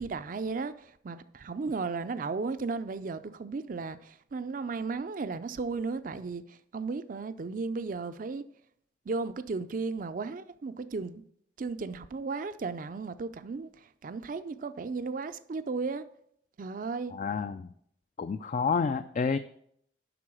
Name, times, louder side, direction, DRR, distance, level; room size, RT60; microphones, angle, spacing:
voice 1, 0.0-8.4 9.1-11.2 11.6-16.0 16.6-17.1, right 4 dB, 50° right, 0.4 m, -35 dB
voice 2, 17.1-17.7 18.2-19.4, left 5 dB, 45° left, 0.3 m, -29 dB
11.0 x 3.8 x 6.1 m
head